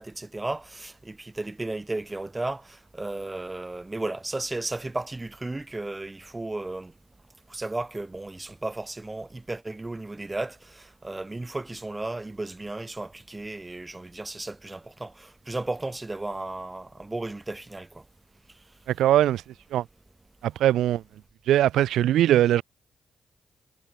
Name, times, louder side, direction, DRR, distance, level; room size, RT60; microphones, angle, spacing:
voice 1, 0.0-6.9 7.5-18.0, right 2 dB, 25° right, 7.0 m, -34 dB
voice 2, 19.0-19.4 19.7-19.8 20.4-21.0 21.5-22.6, right 12 dB, 85° right, 1.0 m, -21 dB
supercardioid pair, 50°, 0 cm